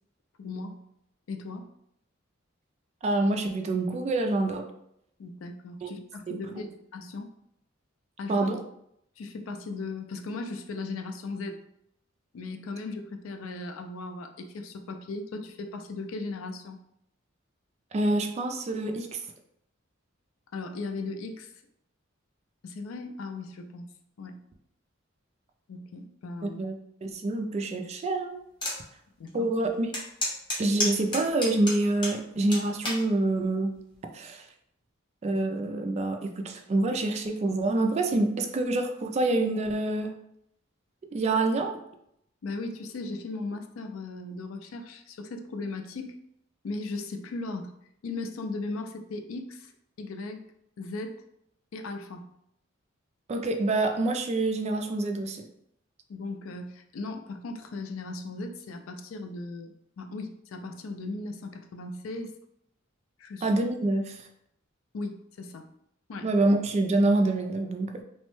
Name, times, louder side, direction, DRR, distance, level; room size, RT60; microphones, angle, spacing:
voice 1, 0.4-0.8 1.3-1.7 5.2-7.3 8.2-8.4 9.2-11.6 12.3-16.8 20.5-21.5 22.6-23.9 24.2-24.4 25.7-26.6 29.2-29.5 42.4-46.2 46.6-47.7 48.0-49.7 50.0-50.5 50.8-51.2 51.7-52.3 56.1-62.3 63.2-63.5 64.9-65.7 66.1-66.3, left 3 dB, 80° left, 6 dB, 0.4 m, -37 dB
voice 2, 3.0-4.6 5.8-5.9 6.3-6.4 8.3-8.6 17.9-19.2 26.6-26.7 27.0-28.4 29.3-29.9 30.6-33.7 34.1-34.5 35.2-40.1 41.1-41.7 53.3-55.5 63.4-64.2 66.2-68.0, right 2 dB, 35° right, 4 dB, 0.3 m, -26 dB
sound 1, 28.6-28.8 29.3-29.4 29.9-32.2 32.5-33.0 33.7-34.1, left 1 dB, 25° left, 0.9 m, -30 dB
3.0 x 2.1 x 3.0 m, 0.76 s
head